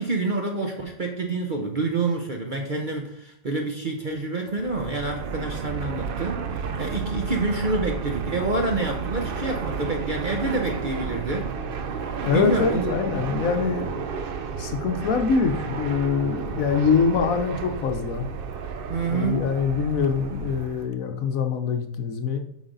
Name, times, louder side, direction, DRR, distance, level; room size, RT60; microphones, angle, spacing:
voice 1, 0.0-11.5 12.2-12.9 18.9-19.6, right 3 dB, 45° right, 2 dB, 0.7 m, -27 dB
Fixed-wing aircraft airplane, 4.5-20.9, right 6 dB, 80° right, 0.5 m, -32 dB
voice 2, 12.2-14.0 14.6-18.3 19.1-22.4, left 5 dB, 65° left, 6 dB, 1.1 m, -24 dB
8.3 x 5.6 x 3.9 m, 0.72 s
omnidirectional pair, 1.7 m